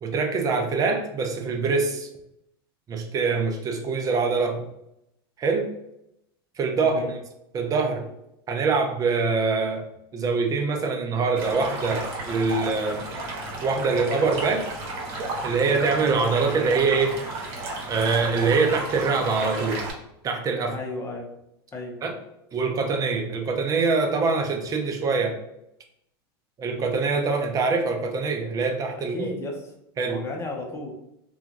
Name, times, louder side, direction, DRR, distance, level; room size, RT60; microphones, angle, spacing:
voice 1, 0.0-2.1 2.9-4.6 5.4-5.7 6.6-7.2 7.5-8.1 8.5-9.8 10.1-13.0 13.6-14.7 15.4-17.2 17.9-19.8 20.2-20.8 22.0-22.2 22.5-25.4 26.6-29.3 30.0-30.2, right 4 dB, 30° right, 4 dB, 0.5 m, -24 dB
voice 2, 6.8-7.2 20.7-21.3 21.7-22.0 29.1-29.6 30.1-30.9, left 2 dB, 20° left, 1 dB, 0.7 m, -34 dB
Stream, 11.4-19.9, right 2 dB, 65° right, 1.0 m, -33 dB
2.8 x 2.4 x 2.5 m, 0.82 s
hypercardioid pair, 105°, 13 cm